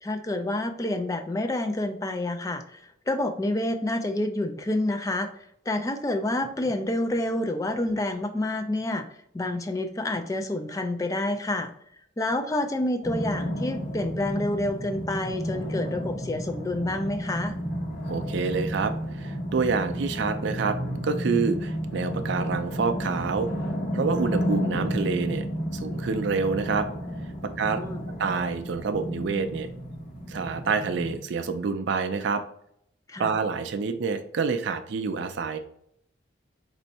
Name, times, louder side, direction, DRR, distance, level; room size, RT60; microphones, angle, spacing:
voice 1, 0.0-5.3 5.7-9.0 9.3-11.7 12.2-17.5 27.6-28.1 33.1-33.3, left 1 dB, 15° left, 7 dB, 0.3 m, -28 dB
sound 1, 13.0-31.2, equal, 45° left, 1.2 m, -32 dB
voice 2, 18.1-20.8 21.0-23.5 23.9-25.4 25.7-26.9 27.6-27.8 28.2-29.7 30.3-32.4 33.2-35.6, right 5 dB, 60° right, 7 dB, 0.4 m, -27 dB
4.3 x 2.6 x 4.1 m, 0.71 s
head